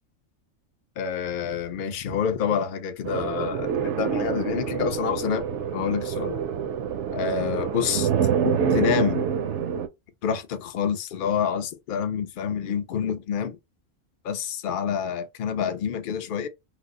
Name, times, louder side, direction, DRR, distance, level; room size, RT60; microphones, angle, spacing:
voice 1, 1.0-5.5 5.7-6.4 7.1-9.2 10.2-13.6 14.2-16.5, left 7 dB, 55° left, 0.6 m, -28 dB
sound 1, 3.0-9.9, right 7 dB, 70° right, 0.8 m, -26 dB
3.3 x 2.0 x 3.6 m
omnidirectional pair, 1.4 m